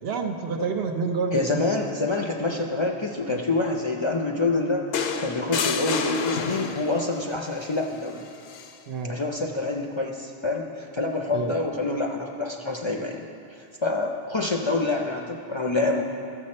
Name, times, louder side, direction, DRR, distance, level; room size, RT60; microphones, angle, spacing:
voice 1, 0.0-1.9 2.5-2.6 3.3-3.4 8.9-9.1 11.3-11.6, right 4 dB, 75° right, 4 dB, 1.0 m, -29 dB
voice 2, 1.3-4.8 5.2-8.2 9.1-13.2 13.8-16.0, left 3 dB, 35° left, 1 dB, 0.5 m, -26 dB
sound 1, 4.9-7.1 8.5-8.7, left 6 dB, 75° left, 0.9 m, -28 dB
13.0 x 6.7 x 4.3 m, 2.5 s
omnidirectional pair, 1.1 m